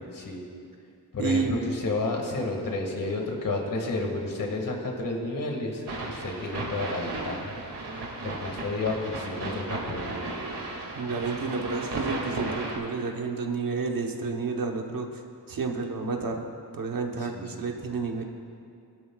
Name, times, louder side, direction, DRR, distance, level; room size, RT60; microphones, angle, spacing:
voice 1, 0.1-0.4 1.1-7.5 8.2-10.2 17.2-17.7, left 2 dB, 55° left, 1 dB, 2.0 m, -31 dB
voice 2, 1.2-1.6 10.9-15.2 15.5-16.4 16.7-18.2, right 4 dB, 60° right, 3 dB, 1.1 m, -30 dB
sound 1, 5.9-12.8, right 2 dB, 90° right, 2.3 m, -35 dB
20.5 x 12.0 x 2.4 m, 2.4 s
wide cardioid pair, 135°, 39 cm